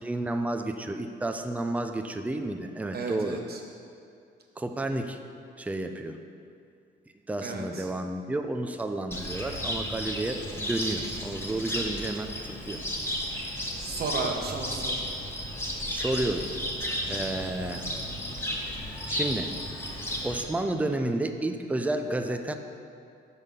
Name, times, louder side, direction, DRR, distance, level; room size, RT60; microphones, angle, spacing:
voice 1, 0.0-3.4 4.6-5.2 5.6-6.2 7.3-12.8 15.9-16.5 17.1-17.8 18.8-19.5 20.2-22.5, right 2 dB, 5° right, 6 dB, 0.5 m, -31 dB
voice 2, 2.9-3.6 7.4-7.8 13.8-15.0, right 3 dB, 50° right, 1 dB, 1.1 m, -33 dB
Cricket, 9.1-20.4, equal, 10° left, 1.1 m, -33 dB
6.4 x 5.7 x 5.2 m, 2.4 s
cardioid pair, 90°, 20 cm